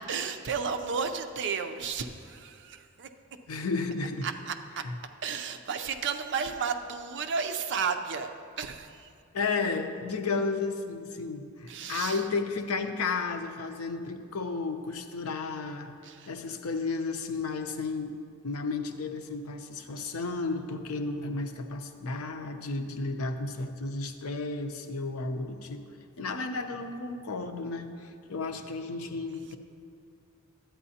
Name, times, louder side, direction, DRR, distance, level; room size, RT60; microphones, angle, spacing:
voice 1, 0.0-3.1 4.2-4.8 5.2-8.3 8.6-9.1 11.7-12.2 16.0-16.3, right 6 dB, 55° right, 7 dB, 0.5 m, -33 dB
voice 2, 3.5-4.3 4.8-4.9 9.3-15.9 16.3-18.1 18.4-25.8 26.2-29.6, left 3 dB, 75° left, 7 dB, 0.6 m, -33 dB
12.0 x 8.8 x 2.8 m, 2.4 s
head